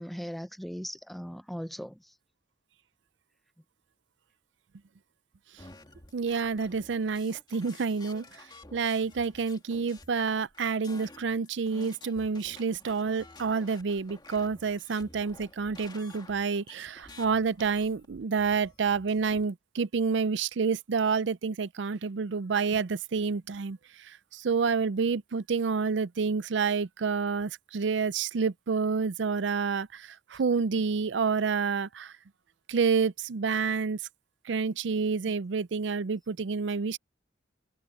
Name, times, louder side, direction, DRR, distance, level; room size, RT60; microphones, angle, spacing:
voice 1, 0.0-2.0 35.2-35.3, equal, ahead, 0.5 m, -38 dB
sound 1, 5.6-19.4, left 2 dB, 25° left, 2.3 m, -52 dB
voice 2, 6.1-32.1 32.7-34.0 34.4-37.0, right 5 dB, 70° right, 0.5 m, -29 dB
head